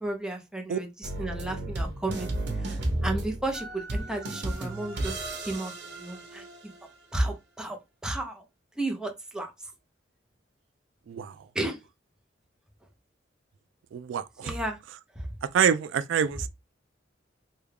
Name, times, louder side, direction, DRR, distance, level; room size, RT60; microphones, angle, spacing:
voice 1, 0.0-2.3 2.6-5.7 6.0-6.4 7.1-8.4 8.8-9.5 11.5-11.8 14.4-14.8 15.2-15.3, right 2 dB, 5° right, 0.7 m, -33 dB
sound 1, 1.0-6.8, right 1 dB, 65° right, 1.0 m, -33 dB
voice 2, 13.9-14.5 15.4-16.5, right 7 dB, 85° right, 0.3 m, -26 dB
3.4 x 2.3 x 3.3 m
head